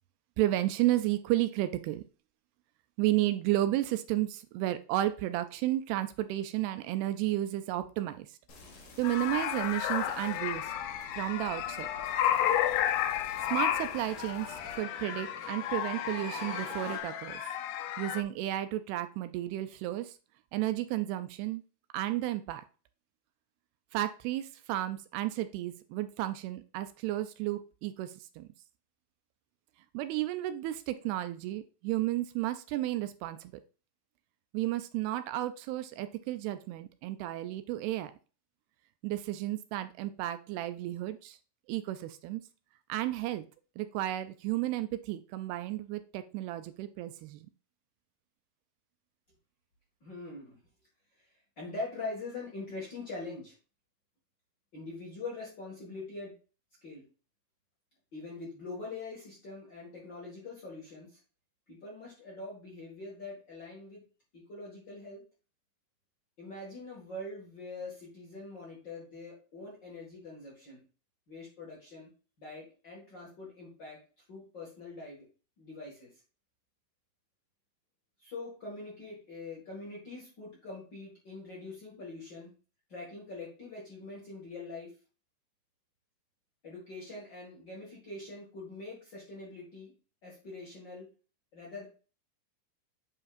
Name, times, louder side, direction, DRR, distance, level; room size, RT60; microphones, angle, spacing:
voice 1, 0.4-2.0 3.0-8.4 9.0-10.7 11.2-11.9 13.5-17.4 18.0-20.2 20.5-21.6 21.9-22.6 23.9-28.5 29.9-33.5 34.5-38.1 39.0-41.4 41.7-42.4 42.9-43.5 43.8-47.5, right 15 dB, 85° right, 10 dB, 2.5 m, -32 dB
sound 1, 8.5-14.7, left 2 dB, 60° left, 1.4 m, -52 dB
sound 2, 9.0-18.2, left 11 dB, 85° left, 2.7 m, -32 dB
sound 3, 9.8-17.0, right 4 dB, 55° right, 3.4 m, -50 dB
voice 2, 50.0-50.6 51.6-53.5 54.7-56.3 56.8-57.0 58.1-61.2 61.7-64.0 64.3-65.2 66.4-70.8 71.3-72.1 72.4-74.0 74.3-75.2 75.6-76.1 78.2-82.5 82.9-84.9 86.6-89.9 90.2-91.0 91.5-91.9, left 3 dB, 40° left, -5 dB, 1.6 m, -43 dB
8.3 x 5.5 x 2.5 m, 0.35 s
omnidirectional pair, 4.7 m